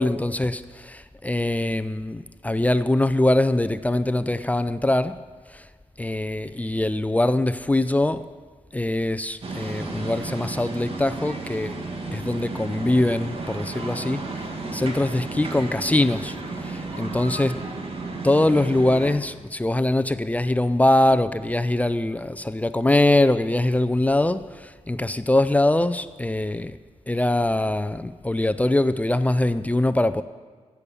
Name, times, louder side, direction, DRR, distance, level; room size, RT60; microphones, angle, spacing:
voice 1, 0.0-5.2 5.5-5.7 6.0-8.3 8.7-11.7 12.1-14.2 14.7-17.5 18.2-26.8 27.1-30.2, left 1 dB, 10° left, 12 dB, 0.5 m, -23 dB
sound 1, 9.4-19.2, right 3 dB, 50° right, 1.8 m, -33 dB
17.0 x 7.1 x 6.9 m, 1.5 s
wide cardioid pair, 100°, 12 cm